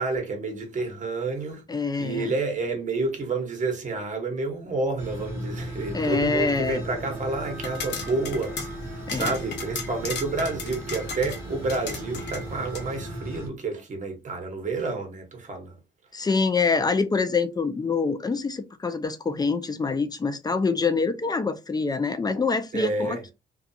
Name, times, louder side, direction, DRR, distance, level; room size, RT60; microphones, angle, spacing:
voice 1, 0.0-1.6 2.0-15.7 22.7-23.2, right 3 dB, 40° right, 1.1 m, -29 dB
voice 2, 1.7-2.3 5.9-6.8 9.1-9.3 16.1-23.3, left 4 dB, 20° left, 0.4 m, -25 dB
sound 1, 5.0-13.5, right 1 dB, 10° right, 1.2 m, -36 dB
sound 2, 7.5-12.9, left 4 dB, 60° left, 0.9 m, -36 dB
2.3 x 2.3 x 2.7 m
cardioid pair, 90°, 20 cm